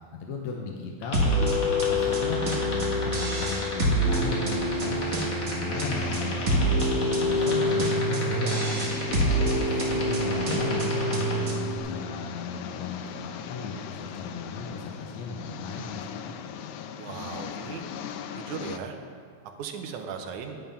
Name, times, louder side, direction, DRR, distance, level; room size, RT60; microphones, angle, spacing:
voice 1, 0.2-1.6 1.9-5.0 5.5-16.4, left 4 dB, 75° left, 0 dB, 2.0 m, -36 dB
sound 1, 1.0-11.3, left 4 dB, 50° left, 2.3 m, -34 dB
sound 2, 1.1-11.8, equal, 55° right, 0.7 m, -26 dB
sound 3, 5.7-18.8, left 8 dB, 90° left, 1.4 m, -39 dB
voice 2, 9.6-10.1 17.0-17.8 18.3-19.0 19.4-20.6, right 6 dB, 80° right, 5 dB, 2.3 m, -38 dB
9.2 x 9.1 x 5.6 m, 2.3 s
omnidirectional pair, 3.5 m